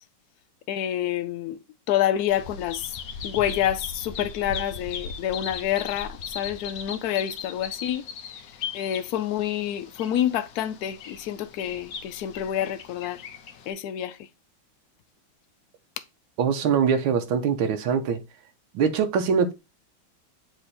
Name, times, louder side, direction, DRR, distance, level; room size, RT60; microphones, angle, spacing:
voice 1, 0.7-1.6 1.9-2.9 3.2-8.0 8.7-13.2 13.7-14.2, left 11 dB, 90° left, 0.8 m, -27 dB
Bird vocalization bird call bird song, 2.3-13.7, left 6 dB, 60° left, 1.0 m, -38 dB
voice 2, 16.4-18.2 18.7-19.5, right 6 dB, 85° right, 1.6 m, -23 dB
7.7 x 3.0 x 4.1 m
omnidirectional pair, 2.2 m